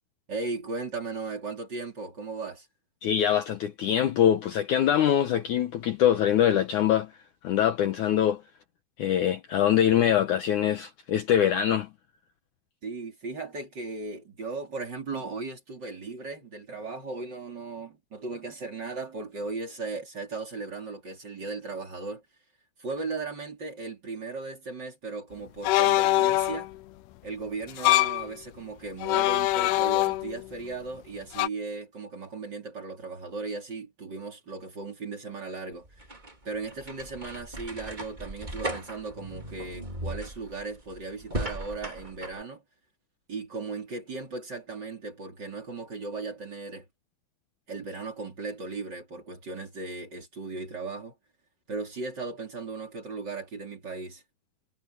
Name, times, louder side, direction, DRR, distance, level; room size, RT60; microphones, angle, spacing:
voice 1, 0.3-2.7 12.8-22.2 22.8-26.7 27.2-35.9 36.5-42.6 43.3-46.9 47.7-51.1 51.7-54.2, right 3 dB, 30° right, 3.5 m, -37 dB
voice 2, 3.0-7.1 7.4-8.4 9.0-11.9, left 10 dB, 70° left, 2.1 m, -23 dB
sound 1, 25.7-26.7 27.7-28.3 29.0-30.5 31.4-31.5, left 16 dB, 90° left, 2.8 m, -23 dB
sound 2, 35.7-42.4, right 1 dB, 15° right, 2.6 m, -37 dB
omnidirectional pair, 4.5 m